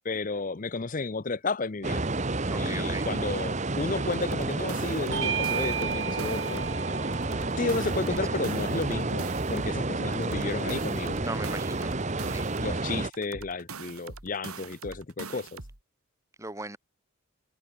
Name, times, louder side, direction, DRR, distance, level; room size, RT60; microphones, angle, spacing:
voice 1, 0.0-2.0 2.6-6.6 7.6-11.2 12.6-15.6, left 3 dB, 35° left, 0.6 m, -32 dB
sound 1, 1.8-13.1, right 2 dB, 30° right, 1.0 m, -30 dB
voice 2, 2.5-3.1 8.1-8.2 11.2-11.9 12.2-12.5 16.4-16.8, right 2 dB, 15° right, 2.0 m, -38 dB
sound 2, 4.1-6.8 7.1-9.8 10.1-12.8 13.1-15.8, right 4 dB, 90° right, 3.4 m, -43 dB
Bell / Doorbell, 5.1-9.9, right 7 dB, 60° right, 4.5 m, -36 dB
head